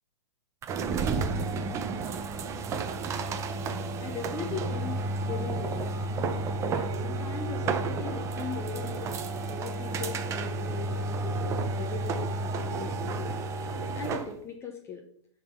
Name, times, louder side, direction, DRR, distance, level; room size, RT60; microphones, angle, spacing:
sound 1, 0.6-14.3, right 3 dB, 20° right, 0.6 m, -31 dB
voice 1, 4.0-6.0 6.7-9.1 9.5-13.4 14.0-15.0, left 5 dB, 15° left, 2 dB, 0.8 m, -39 dB
10.0 x 3.8 x 5.5 m, 0.66 s
hypercardioid pair, 145°, 15 cm